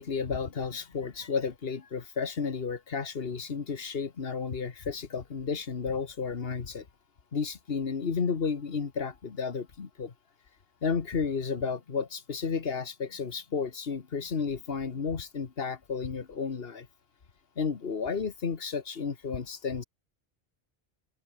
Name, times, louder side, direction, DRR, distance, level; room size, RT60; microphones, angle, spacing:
voice 1, 0.0-6.8 7.3-10.1 10.8-16.9 17.6-19.8, left 5 dB, 65° left, 1.6 m, -32 dB
omnidirectional pair, 1.1 m